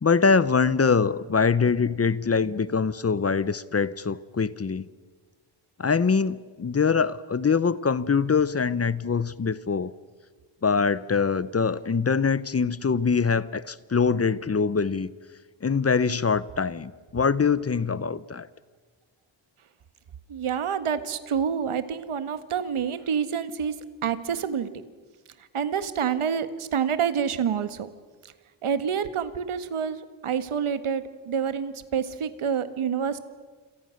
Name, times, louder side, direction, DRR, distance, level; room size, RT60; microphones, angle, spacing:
voice 1, 0.0-4.8 5.8-9.9 10.6-15.1 15.6-18.5, left 5 dB, 30° left, 17 dB, 0.8 m, -23 dB
voice 2, 20.3-24.7 25.5-27.9 28.2-28.3 28.6-33.2, right 7 dB, 85° right, 11 dB, 1.7 m, -28 dB
28.5 x 27.5 x 6.5 m, 1.4 s
wide cardioid pair, 120°, 49 cm